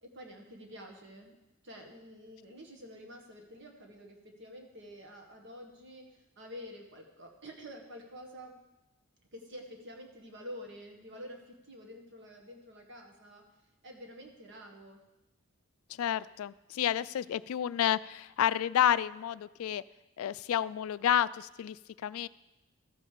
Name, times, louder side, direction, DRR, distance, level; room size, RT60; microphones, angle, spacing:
voice 1, 0.0-1.4 1.6-8.6 9.3-13.4 13.8-15.0, equal, 55° right, 2 dB, 1.8 m, -48 dB
voice 2, 15.9-19.8 20.2-22.3, left 10 dB, 75° left, 18 dB, 0.3 m, -30 dB
14.0 x 5.3 x 6.7 m, 0.97 s
head